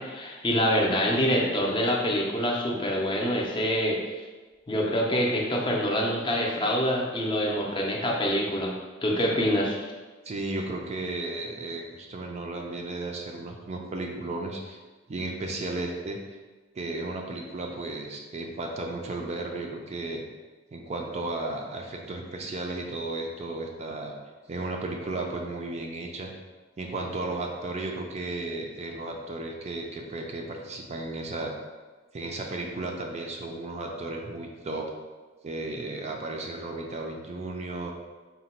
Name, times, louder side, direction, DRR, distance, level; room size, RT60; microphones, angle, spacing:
voice 1, 0.0-4.0 4.7-8.7 9.0-9.8, equal, 25° left, -2 dB, 0.5 m, -25 dB
voice 2, 10.2-14.8 15.1-16.2 16.8-20.2 20.7-24.1 24.5-26.3 26.8-31.5 32.1-34.9 35.4-37.9, right 2 dB, 35° right, 1 dB, 0.4 m, -34 dB
3.8 x 2.2 x 4.2 m, 1.3 s
head